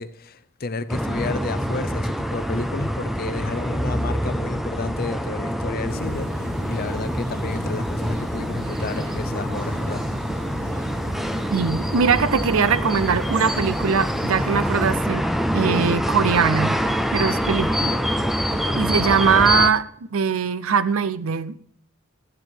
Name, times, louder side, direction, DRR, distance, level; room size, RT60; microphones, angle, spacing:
voice 1, 0.0-10.0 18.5-18.8, left 3 dB, 40° left, 0.6 m, -31 dB
sound 1, 0.9-19.7, equal, ahead, 0.4 m, -25 dB
sound 2, 5.9-15.0, equal, 85° right, 2.4 m, -36 dB
voice 2, 11.5-15.2 15.5-16.8 17.1-18.0 18.7-19.8 20.1-21.6, right 6 dB, 65° right, 0.5 m, -21 dB
12.0 x 9.7 x 4.4 m
head